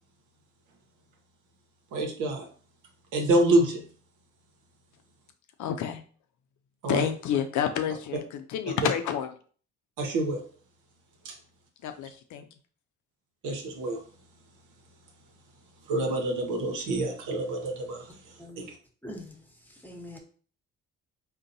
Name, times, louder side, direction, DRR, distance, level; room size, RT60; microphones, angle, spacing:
voice 1, 1.9-2.5 3.1-3.8 6.8-7.1 10.0-10.4 11.2-11.3 13.4-14.0 15.9-18.0 18.6-18.7, right 1 dB, 80° right, 3 dB, 0.8 m, -26 dB
voice 2, 5.6-6.0 6.9-9.3 11.8-12.5, left 9 dB, 70° left, 6 dB, 0.5 m, -29 dB
voice 3, 19.0-20.2, left 1 dB, 5° left, 2 dB, 0.9 m, -44 dB
3.8 x 2.2 x 2.6 m, 0.43 s
supercardioid pair, 60°, 31 cm